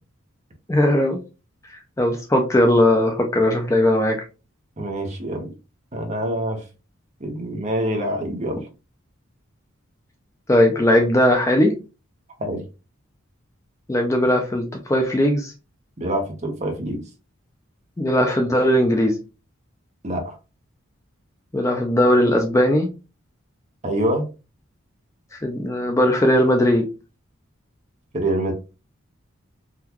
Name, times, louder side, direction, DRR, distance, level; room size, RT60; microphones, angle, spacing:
voice 1, 0.7-1.2 2.0-4.2 10.5-11.7 13.9-15.5 18.0-19.1 21.5-22.9 25.3-26.8, left 1 dB, 15° left, 0.3 m, -18 dB
voice 2, 4.8-5.5 5.9-6.6 7.2-8.6 12.4-12.6 16.0-17.0 20.0-20.4 23.8-24.3 28.1-28.5, right 1 dB, 30° right, 0.8 m, -25 dB
3.7 x 2.3 x 2.9 m
head